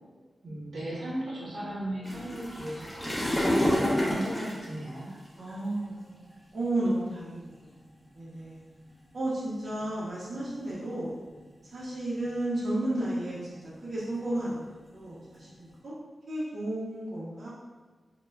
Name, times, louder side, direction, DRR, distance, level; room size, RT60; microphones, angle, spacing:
voice 1, 0.4-5.1, right 1 dB, 80° right, -7 dB, 0.8 m, -36 dB
sound 1, 2.0-5.5 6.3-6.5 7.2-7.3 7.6-7.8 8.4-8.9 9.8-10.9 11.3-11.8 12.3-12.6 13.0-15.7, left 1 dB, 5° left, 0.6 m, -30 dB
voice 2, 5.4-6.2 6.5-7.7 8.1-8.6 9.1-11.1 11.7-14.7 14.9-15.9 16.3-17.5, right 1 dB, 50° right, -8 dB, 0.6 m, -33 dB
2.1 x 2.0 x 3.3 m, 1.4 s
wide cardioid pair, 125°, 0 cm